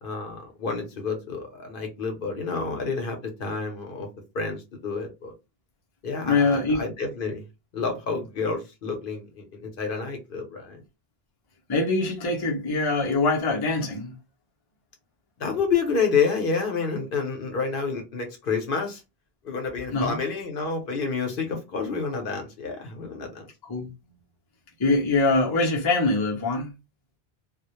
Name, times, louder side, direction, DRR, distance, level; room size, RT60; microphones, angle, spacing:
voice 1, 0.0-4.1 4.3-5.3 6.0-7.4 7.7-10.8 15.4-19.0 19.4-23.4, left 5 dB, 65° left, 0.8 m, -29 dB
voice 2, 6.3-6.8 11.7-14.1 19.9-20.2 23.7-23.9 24.8-26.7, left 3 dB, 30° left, 0.5 m, -23 dB
2.2 x 2.1 x 2.9 m
omnidirectional pair, 1.0 m